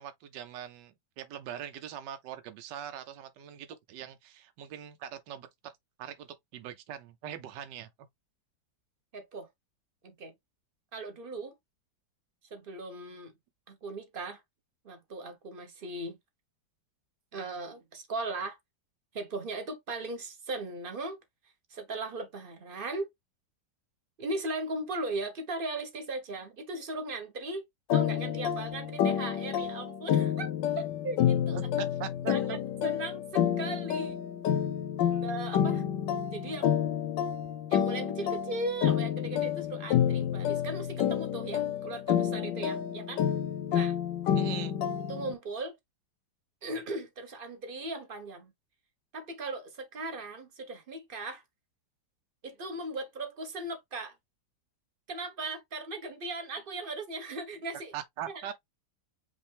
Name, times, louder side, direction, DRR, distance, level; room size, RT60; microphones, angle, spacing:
voice 1, 0.0-5.5 6.0-7.9 31.8-32.6 35.1-35.3 44.3-44.7 57.9-58.5, right 10 dB, 80° right, 1.3 m, -42 dB
voice 2, 9.1-9.5 10.0-10.3 10.9-11.6 12.5-13.3 13.7-14.4 14.8-16.2 17.3-18.6 19.1-21.2 21.7-23.1 24.2-27.7 27.9-30.5 30.8-31.6 32.3-34.2 35.2-35.8 36.3-36.7 37.7-43.2 43.7-44.0 45.1-45.8 46.6-48.5 49.1-51.4 52.4-54.1 55.1-57.9 58.3-58.5, right 2 dB, 40° right, 0.9 m, -38 dB
sound 1, 27.9-45.3, left 9 dB, 85° left, 1.4 m, -29 dB
5.3 x 2.5 x 3.4 m
omnidirectional pair, 1.9 m